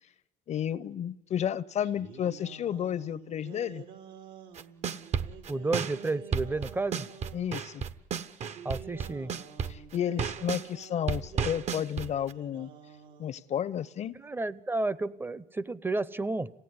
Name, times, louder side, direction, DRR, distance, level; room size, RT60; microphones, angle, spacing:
voice 1, 0.5-3.8 7.3-7.8 9.7-12.7 13.2-14.1, left 9 dB, 50° left, 17 dB, 0.8 m, -32 dB
sound 1, 1.8-7.6 8.4-13.4, right 7 dB, 80° right, 3.0 m, -50 dB
sound 2, 4.6-10.7 11.1-12.3, right 7 dB, 45° right, 1.0 m, -32 dB
voice 2, 5.5-7.1 8.6-9.3 14.2-16.5, right 2 dB, 15° right, 19 dB, 0.8 m, -31 dB
27.0 x 17.0 x 9.7 m, 1.0 s
cardioid pair, 100°, 15 cm